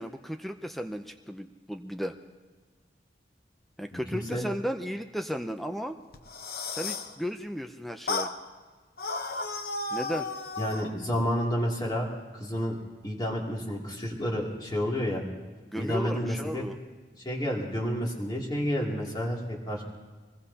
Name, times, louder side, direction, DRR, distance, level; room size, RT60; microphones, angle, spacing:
voice 1, 0.0-2.1 3.8-6.0 6.7-8.3 9.9-10.3 15.7-16.8, equal, ahead, 6 dB, 0.5 m, -34 dB
voice 2, 4.1-4.5 10.6-12.8 13.0-15.2 15.7-16.6 17.2-19.8, equal, 25° left, -3 dB, 2.7 m, -30 dB
sound 1, 6.1-7.1 8.1-8.4 9.0-10.9, left 3 dB, 55° left, 1.0 m, -33 dB
24.5 x 20.5 x 2.9 m, 1.4 s
head